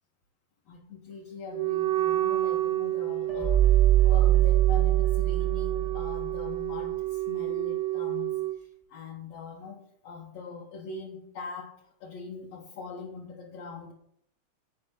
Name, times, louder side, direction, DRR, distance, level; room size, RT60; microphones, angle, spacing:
voice 1, 0.7-3.7 4.0-13.9, left 4 dB, 65° left, -1 dB, 1.8 m, -42 dB
Wind instrument woodwind instrument, 1.5-8.6, right 15 dB, 80° right, 1.9 m, -30 dB
sound 1, 3.3-6.5, right 13 dB, 20° right, 1.0 m, -22 dB
9.9 x 5.0 x 8.0 m, 0.71 s
omnidirectional pair, 3.8 m